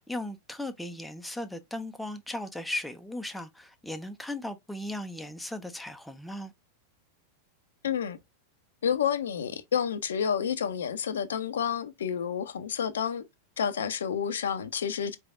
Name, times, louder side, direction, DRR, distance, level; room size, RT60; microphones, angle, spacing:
voice 1, 0.0-6.5, left 1 dB, 5° left, 0.5 m, -37 dB
voice 2, 7.8-8.2 8.8-13.2 13.6-15.2, left 8 dB, 65° left, 0.5 m, -29 dB
4.6 x 3.4 x 2.4 m
figure-of-eight pair, 90°, 0 cm